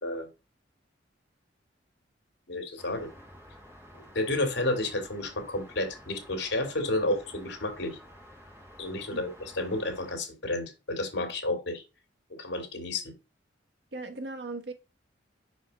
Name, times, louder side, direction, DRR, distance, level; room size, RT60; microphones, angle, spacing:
voice 1, 2.5-3.1 4.1-8.0 8.8-11.8 12.3-13.1, left 2 dB, 70° left, 2.2 m, -31 dB
sound 1, 2.8-10.1, equal, 15° right, 2.1 m, -51 dB
voice 2, 13.9-14.7, right 2 dB, 65° right, 1.2 m, -38 dB
5.6 x 5.1 x 3.9 m
head